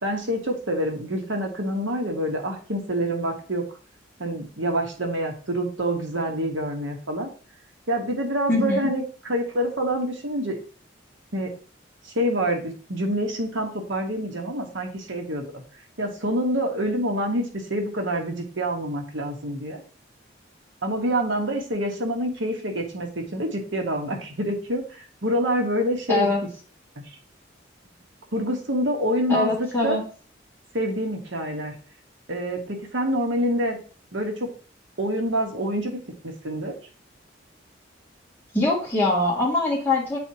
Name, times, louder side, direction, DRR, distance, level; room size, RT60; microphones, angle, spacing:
voice 1, 0.0-3.7 4.2-7.3 7.9-10.6 11.3-11.5 12.0-15.4 16.0-19.8 20.8-24.8 25.2-26.3 28.3-30.0 30.7-31.8 32.3-33.8 34.1-34.5 35.0-36.0 36.2-36.7, equal, 80° right, 3 dB, 1.3 m, -26 dB
voice 2, 8.5-8.9 26.1-26.4 29.3-30.0 38.5-40.2, left 2 dB, 10° left, -5 dB, 2.3 m, -23 dB
9.0 x 4.3 x 2.9 m, 0.39 s
head